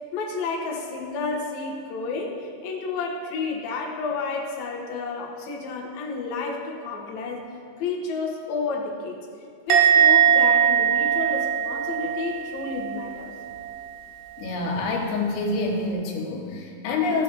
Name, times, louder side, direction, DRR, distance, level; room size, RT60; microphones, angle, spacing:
voice 1, 0.1-7.5 7.8-9.2 9.7-13.3, left 4 dB, 70° left, -1 dB, 1.8 m, -31 dB
Musical instrument, 9.7-13.1 13.4-13.8, right 8 dB, 85° right, 3.9 m, -20 dB
voice 2, 14.4-17.2, left 3 dB, 90° left, 1 dB, 3.5 m, -26 dB
14.5 x 7.4 x 3.4 m, 2.5 s
omnidirectional pair, 5.2 m